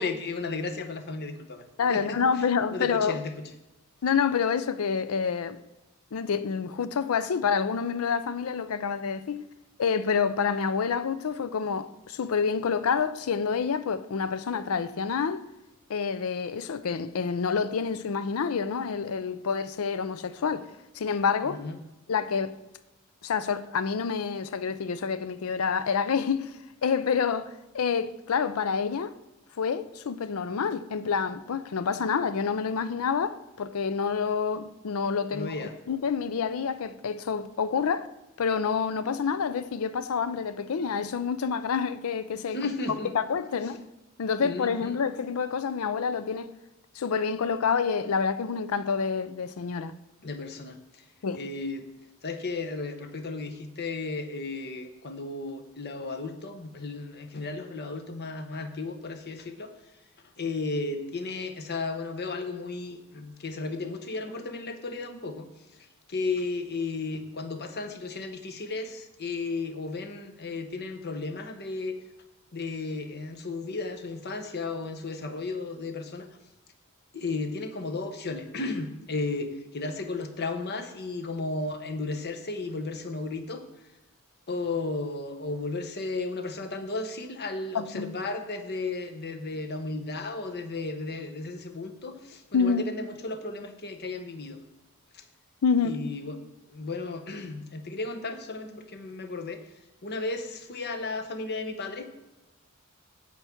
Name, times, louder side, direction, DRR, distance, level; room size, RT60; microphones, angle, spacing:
voice 1, 0.0-1.6 1.9-2.2 2.7-3.3 21.5-21.7 35.3-35.7 42.5-43.1 44.4-45.0 50.2-51.0 51.4-51.9 52.2-59.7 60.4-65.5 66.1-72.0 72.5-76.3 77.1-83.6 84.5-94.6 95.1-95.2 95.8-96.4 96.7-99.6 100.0-102.1, left 3 dB, 50° left, 0.9 m, -34 dB
voice 2, 1.8-3.2 4.0-5.6 6.1-9.4 9.8-15.5 15.9-20.7 20.9-21.6 22.1-22.6 23.2-29.1 29.6-35.5 35.9-38.1 38.4-42.6 43.1-43.8 44.2-46.5 47.0-49.9 51.2-51.4 87.7-88.1 92.5-92.8 95.6-96.0, left 6 dB, 80° left, 0.5 m, -28 dB
8.2 x 4.7 x 7.1 m
head